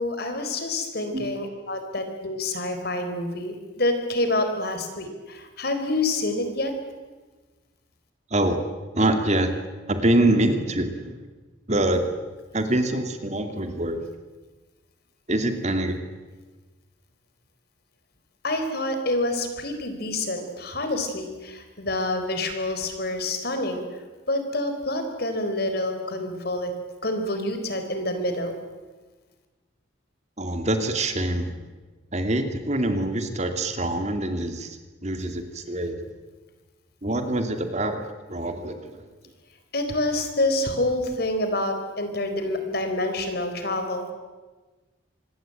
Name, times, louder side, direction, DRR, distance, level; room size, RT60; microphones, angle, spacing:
voice 1, 0.0-6.7 18.4-23.8 24.3-26.7 27.0-28.5 39.7-44.1, left 2 dB, 55° left, 7 dB, 4.3 m, -27 dB
voice 2, 8.9-9.5 9.9-11.2 11.7-12.0 12.5-14.1 15.3-15.9 30.4-31.5 32.1-34.8 35.0-36.0 37.0-38.0 38.3-39.0, right 1 dB, 35° right, 6 dB, 2.4 m, -24 dB
25.5 x 20.5 x 9.1 m, 1.3 s
head